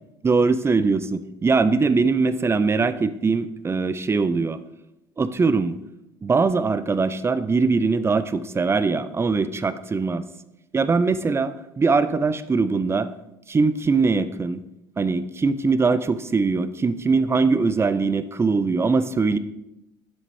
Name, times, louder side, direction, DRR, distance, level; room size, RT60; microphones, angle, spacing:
voice 1, 0.2-4.6 5.2-5.8 6.2-10.2 10.7-13.1 13.5-14.6 15.0-19.4, right 4 dB, 20° right, 14 dB, 0.6 m, -21 dB
12.0 x 7.3 x 3.4 m, 0.90 s
figure-of-eight pair, 60°, 12 cm